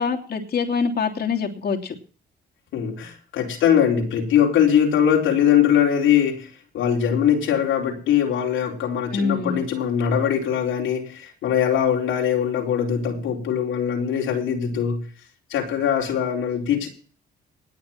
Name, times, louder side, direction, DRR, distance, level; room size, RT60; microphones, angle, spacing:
voice 1, 0.0-1.9 9.1-9.6, left 5 dB, 55° left, 2 dB, 3.1 m, -25 dB
voice 2, 2.7-6.5 6.7-15.1 15.5-16.9, left 9 dB, 85° left, 0 dB, 4.2 m, -21 dB
20.0 x 6.8 x 5.9 m, 0.42 s
cardioid pair, 90°, 20 cm